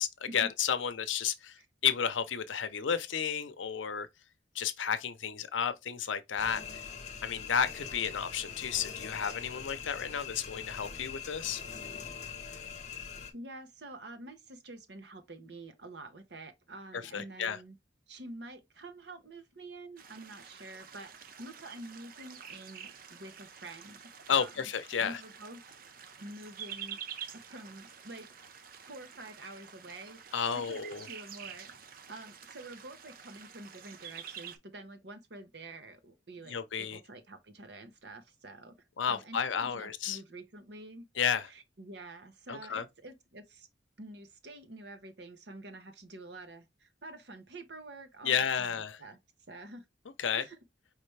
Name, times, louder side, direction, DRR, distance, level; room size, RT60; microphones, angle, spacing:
voice 1, 0.0-4.1 4.5-6.6 7.2-11.6 17.1-17.6 24.3-25.2 30.3-31.1 36.5-37.0 39.0-40.2 41.2-41.5 42.5-42.8 48.2-49.0 50.2-50.4, left 7 dB, 90° left, 0.6 m, -32 dB
sound 1, 6.4-13.3, left 6 dB, 40° left, 0.8 m, -43 dB
voice 2, 13.3-17.8 18.1-24.7 25.0-25.8 26.2-27.0 27.3-28.3 28.9-30.2 30.5-31.7 32.1-38.8 39.0-41.1 41.5-43.7 44.0-49.2 49.5-49.8 50.3-50.6, right 2 dB, 65° right, 1.0 m, -48 dB
sound 2, 20.0-34.6, right 8 dB, 50° right, 0.6 m, -48 dB
4.9 x 3.3 x 3.2 m
head